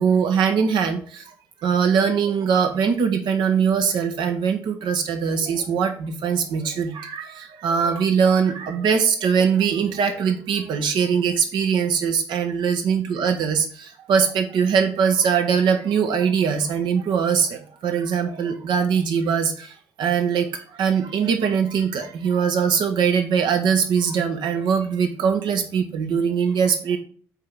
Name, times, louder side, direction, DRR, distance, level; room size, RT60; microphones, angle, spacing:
voice 1, 0.0-1.3 1.6-27.0, right 6 dB, 65° right, 6 dB, 1.3 m, -22 dB
6.6 x 4.6 x 5.4 m, 0.43 s
hypercardioid pair, 45°, 9 cm